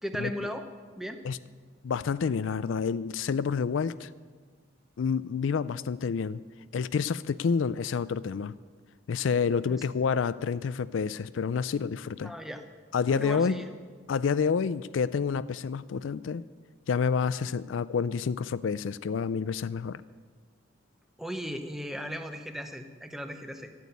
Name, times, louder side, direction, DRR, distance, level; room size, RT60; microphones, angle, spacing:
voice 1, 0.0-0.7 1.0-1.2 9.6-9.8 12.2-12.6 13.1-13.6 21.2-23.7, equal, ahead, 7 dB, 0.9 m, -36 dB
voice 2, 1.8-4.1 5.0-6.4 6.7-8.5 9.1-12.3 12.9-13.6 14.1-16.4 16.9-20.0, left 6 dB, 75° left, 16 dB, 0.4 m, -28 dB
13.5 x 9.2 x 8.3 m, 1.5 s
head